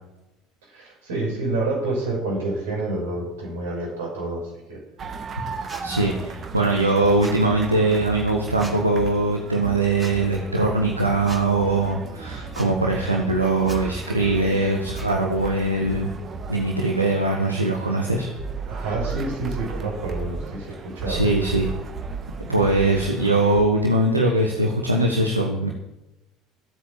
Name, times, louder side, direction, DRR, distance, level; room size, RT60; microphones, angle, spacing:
voice 1, 0.7-4.8 18.7-21.3, right 2 dB, 65° right, -1 dB, 5.2 m, -28 dB
sound 1, 5.0-23.6, right 5 dB, 35° right, 1.6 m, -35 dB
sound 2, 5.7-5.8 7.2-7.4 8.6-8.8 10.0-10.1 11.2-11.4 12.5-12.7 13.6-13.8 14.9-15.1, right 1 dB, 20° right, 4.5 m, -39 dB
voice 2, 5.8-16.1 16.5-18.3 21.1-21.7 22.5-25.7, right 2 dB, 85° right, 0 dB, 1.4 m, -21 dB
15.0 x 8.3 x 7.3 m, 0.99 s
figure-of-eight pair, 60°, 0 cm